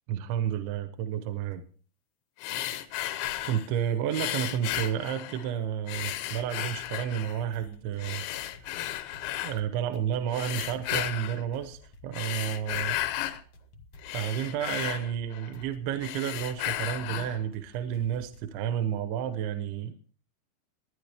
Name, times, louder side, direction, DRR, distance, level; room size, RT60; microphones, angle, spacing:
voice 1, 0.1-1.6 3.1-3.2 3.4-8.2 9.4-13.0 14.1-20.0, right 9 dB, 80° right, 9 dB, 3.1 m, -31 dB
sound 1, 2.4-3.7 4.1-5.5 5.9-7.4 8.0-9.6 10.3-11.4 12.0-13.4 13.8-15.7 16.0-17.4, left 13 dB, 80° left, 3.2 m, -34 dB
sound 2, 5.9-18.6, left 1 dB, 65° left, 1.5 m, -54 dB
22.5 x 10.0 x 3.4 m, 0.42 s
omnidirectional pair, 5.3 m